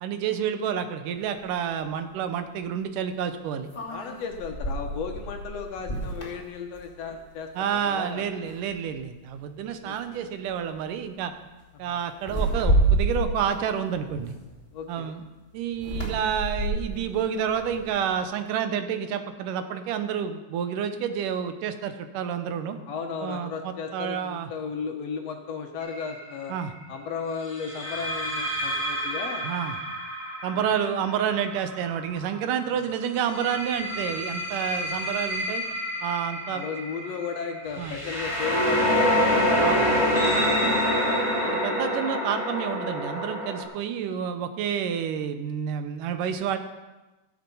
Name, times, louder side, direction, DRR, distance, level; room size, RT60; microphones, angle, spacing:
voice 1, 0.0-3.7 7.6-11.3 11.8-14.3 14.9-15.2 15.5-22.8 23.2-24.5 26.5-26.7 29.4-29.8 30.4-35.6 36.0-36.7 37.8-38.0 39.6-39.9 41.6-46.6, right 8 dB, 90° right, 9 dB, 2.5 m, -29 dB
sound 1, 1.4-1.5 3.7-7.3 7.7-8.0 8.4-9.1 10.0-10.2 10.5-10.8 12.2-14.8 15.7-18.2, right 2 dB, 15° left, 2.6 m, -29 dB
voice 2, 3.9-8.2 9.8-10.2 11.9-12.0 14.7-15.1 22.9-26.5 26.9-29.5 30.5-30.6 32.7-32.9 36.5-41.0, left 5 dB, 65° left, 3 dB, 2.0 m, -35 dB
sound 2, 25.8-26.1 27.6-32.4 33.2-43.6, equal, ahead, 4.0 m, -27 dB
16.0 x 7.5 x 5.4 m, 1.1 s
omnidirectional pair, 3.6 m